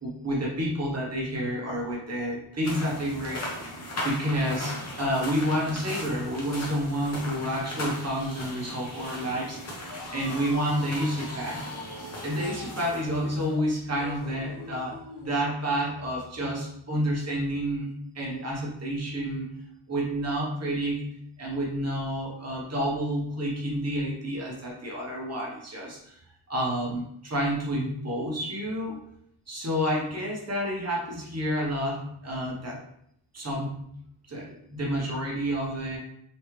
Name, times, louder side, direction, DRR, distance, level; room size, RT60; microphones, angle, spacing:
voice 1, 0.0-3.7 4.0-9.9 10.1-11.7 12.2-17.9 18.1-19.6 19.9-21.1 21.4-26.1 26.5-29.0 29.5-32.8 33.3-33.8 34.3-36.0, equal, 35° right, -3 dB, 1.0 m, -29 dB
sound 1, 2.6-13.5, left 1 dB, 35° left, 0.9 m, -38 dB
sound 2, 9.9-15.4, left 3 dB, 60° left, 0.7 m, -43 dB
3.4 x 3.1 x 3.1 m, 0.71 s
wide cardioid pair, 150°, 45 cm